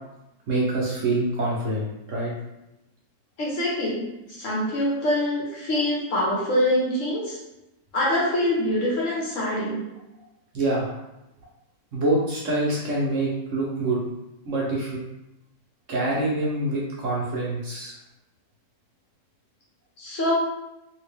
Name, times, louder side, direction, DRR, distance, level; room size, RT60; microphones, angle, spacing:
voice 1, 0.5-2.3 10.5-11.0 11.9-14.0 14.4-15.0 15.9-17.9, right 2 dB, 60° right, -5 dB, 0.9 m, -25 dB
voice 2, 3.4-7.4 7.9-9.8 20.0-20.3, left 1 dB, 50° left, -5 dB, 1.3 m, -25 dB
2.9 x 2.8 x 3.4 m, 0.93 s
omnidirectional pair, 1.8 m